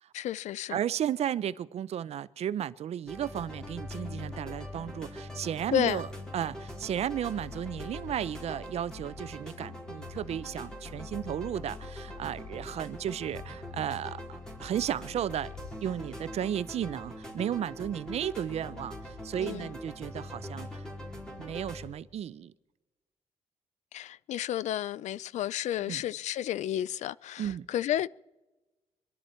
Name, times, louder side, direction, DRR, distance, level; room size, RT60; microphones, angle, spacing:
voice 1, 0.1-0.8 5.7-6.0 19.4-19.7 23.9-28.1, left 12 dB, 75° left, 0.4 m, -31 dB
voice 2, 0.7-6.1 6.3-15.5 15.8-20.9 21.4-22.5 25.9-26.0 27.4-27.7, right 10 dB, 60° right, 0.6 m, -34 dB
sound 1, 3.1-21.8, left 1 dB, 5° left, 4.1 m, -42 dB
25.5 x 12.0 x 4.4 m
cardioid pair, 140°, 12 cm